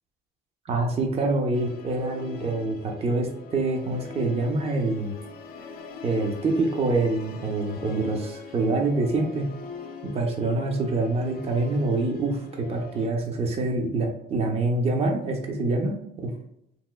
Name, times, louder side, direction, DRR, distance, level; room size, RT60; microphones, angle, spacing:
voice 1, 0.7-5.1 6.0-9.5 10.0-16.3, right 2 dB, 35° right, 2 dB, 0.6 m, -26 dB
Musical instrument, 1.5-13.1, left 4 dB, 60° left, 0.5 m, -41 dB
3.0 x 3.0 x 2.2 m, 0.78 s
cardioid pair, 110°, 17 cm